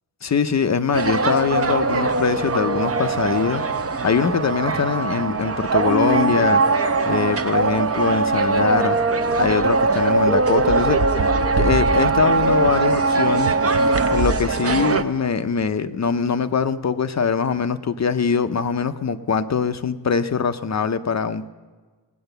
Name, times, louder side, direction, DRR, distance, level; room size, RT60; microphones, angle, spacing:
voice 1, 0.2-3.6 4.0-9.0 9.4-11.3 11.6-13.5 14.1-21.5, left 6 dB, 40° left, 10 dB, 0.5 m, -22 dB
sound 1, 0.9-15.0, right 3 dB, 35° right, 0.6 m, -20 dB
19.5 x 8.9 x 6.7 m, 1.4 s
wide cardioid pair, 160°, 41 cm